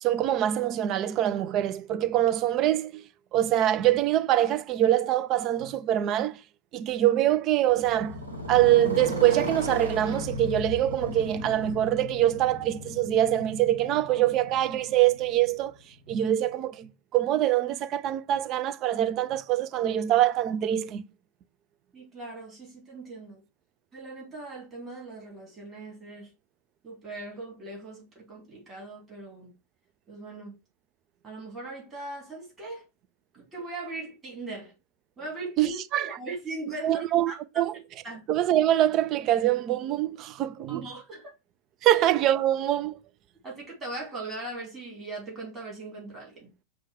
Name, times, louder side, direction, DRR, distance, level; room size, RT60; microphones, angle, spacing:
voice 1, 0.0-6.4 6.7-8.2 8.5-15.8 16.1-21.0 35.6-36.2 36.8-37.7 38.3-40.8 41.8-43.0, right 12 dB, 35° right, 0.4 m, -24 dB
Motorcycle, 7.7-15.7, left 1 dB, 80° right, 1.2 m, -36 dB
voice 2, 21.9-23.4 23.9-26.3 26.8-29.5 30.1-30.5 31.2-32.9 33.5-34.7 35.2-37.4 38.0-38.2 40.7-41.3 41.9-42.0 43.4-46.5, right 2 dB, 20° right, 2.3 m, -39 dB
5.2 x 2.3 x 3.5 m
figure-of-eight pair, 90°, 0 cm